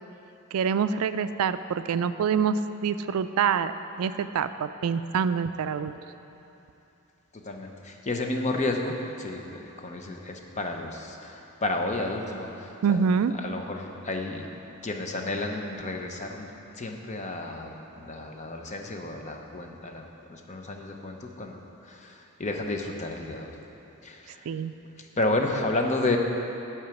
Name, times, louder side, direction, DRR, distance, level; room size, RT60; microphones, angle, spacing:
voice 1, 0.5-3.7 4.0-5.9 12.8-13.3 24.5-24.7, right 6 dB, 75° right, 12 dB, 0.3 m, -26 dB
voice 2, 7.3-13.0 13.3-14.5 14.8-20.0 20.3-23.6 24.0-24.5 25.0-26.2, left 2 dB, 35° left, 3 dB, 0.7 m, -32 dB
10.5 x 4.7 x 7.1 m, 3.0 s
head